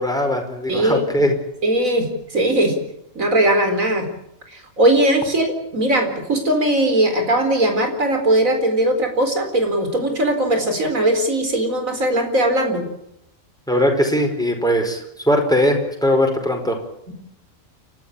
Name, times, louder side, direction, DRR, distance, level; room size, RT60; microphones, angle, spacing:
voice 1, 0.0-1.3 13.7-16.8, left 1 dB, 5° left, 3 dB, 4.9 m, -20 dB
voice 2, 0.7-1.0 1.6-2.7 3.1-4.1 4.5-12.8 17.1-17.2, right 1 dB, 85° right, 5 dB, 4.7 m, -19 dB
30.0 x 13.0 x 8.6 m, 0.80 s
omnidirectional pair, 1.4 m